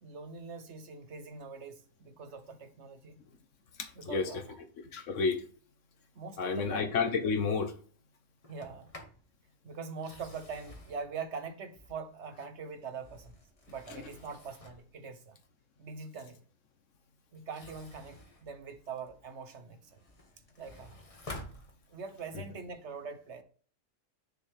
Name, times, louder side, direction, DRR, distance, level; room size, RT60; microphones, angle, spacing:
voice 1, 0.0-3.2 4.0-4.6 6.2-6.8 8.5-8.9 9.6-13.4 13.7-15.4 15.8-16.4 17.3-20.0 20.6-21.0 21.9-23.4, right 5 dB, 70° right, 1.2 m, -43 dB
voice 2, 3.8-4.4 4.9-5.4 6.4-7.7 13.9-14.0, left 5 dB, 85° left, 1.4 m, -30 dB
Sliding door, 8.4-9.2 9.9-12.2 12.8-14.9 17.3-19.3 19.8-22.3, left 2 dB, 30° left, 1.4 m, -50 dB
7.4 x 6.4 x 3.5 m
omnidirectional pair, 1.3 m